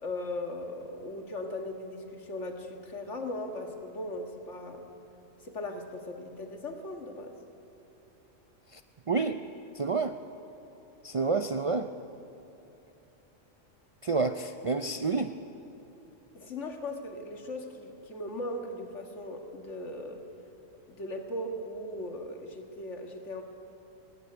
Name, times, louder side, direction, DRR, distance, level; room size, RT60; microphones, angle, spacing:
voice 1, 0.0-4.9 5.4-7.4 16.3-20.2 20.9-23.4, left 1 dB, 65° left, 4 dB, 2.0 m, -38 dB
voice 2, 9.1-9.4 9.8-10.1 11.0-11.9 14.0-15.3, right 4 dB, 50° right, 8 dB, 0.4 m, -28 dB
18.0 x 17.5 x 9.6 m, 2.9 s
omnidirectional pair, 1.3 m